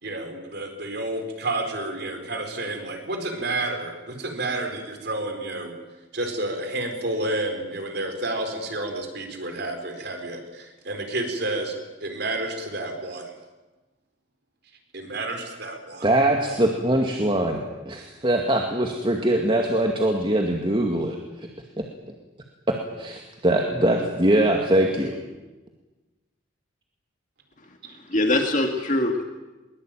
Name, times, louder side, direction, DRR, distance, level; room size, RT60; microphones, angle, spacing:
voice 1, 0.0-5.7 6.1-11.7 12.0-13.3 14.9-16.1 27.8-28.0, right 2 dB, 55° right, 5 dB, 4.4 m, -30 dB
voice 2, 16.0-21.5 21.8-21.9 22.7-25.1, right 1 dB, 25° right, 2 dB, 2.2 m, -22 dB
voice 3, 27.6-29.2, left 1 dB, 40° left, 3 dB, 2.1 m, -24 dB
22.0 x 22.0 x 9.1 m, 1.1 s
head